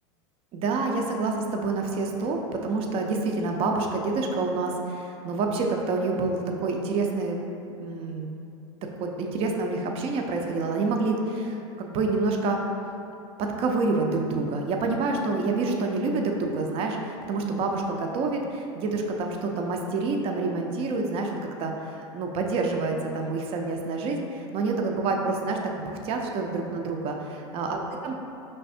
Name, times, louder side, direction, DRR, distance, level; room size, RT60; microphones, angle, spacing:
voice 1, 0.5-7.4 7.8-8.3 9.0-12.6 13.4-27.2 27.5-28.2, right 3 dB, 40° right, 2 dB, 0.5 m, -27 dB
5.2 x 3.3 x 2.6 m, 2.7 s
hypercardioid pair, 105°, 15 cm